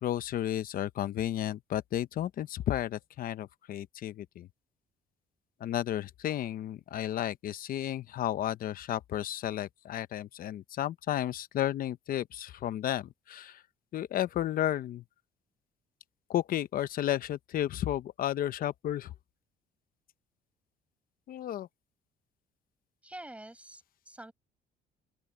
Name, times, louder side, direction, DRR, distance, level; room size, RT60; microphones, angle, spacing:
voice 1, 0.0-4.5 5.6-13.6 13.9-15.0 16.3-19.1 21.3-21.7, left 12 dB, 60° left, 0.9 m, -33 dB
voice 2, 23.0-24.3, right 1 dB, 5° right, 6.7 m, -47 dB
open air
cardioid pair, 110°, 17 cm